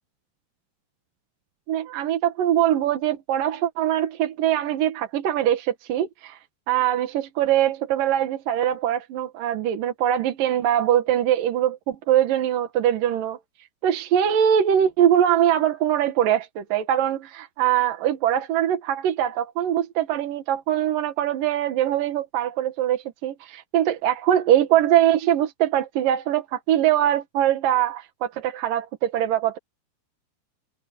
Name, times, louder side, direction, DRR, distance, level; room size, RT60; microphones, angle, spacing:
voice 1, 1.7-6.4 6.7-13.4 13.8-29.6, right 11 dB, 60° right, 2.6 m, -22 dB
omnidirectional pair, 5.0 m